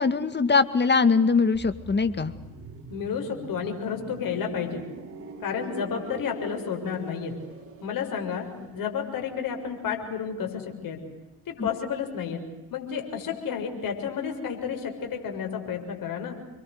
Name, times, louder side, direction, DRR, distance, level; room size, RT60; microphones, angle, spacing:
voice 1, 0.0-2.3 11.6-11.7, left 4 dB, 25° left, 11 dB, 2.1 m, -22 dB
sound 1, 1.5-11.2 11.5-11.7, right 3 dB, 30° right, 6.6 m, -44 dB
voice 2, 2.9-4.8 5.4-7.3 7.8-8.5 8.7-11.0 11.5-12.4 12.7-16.3, left 7 dB, 50° left, 3 dB, 6.8 m, -31 dB
28.0 x 23.0 x 8.2 m, 1.1 s
hypercardioid pair, 60°, 43 cm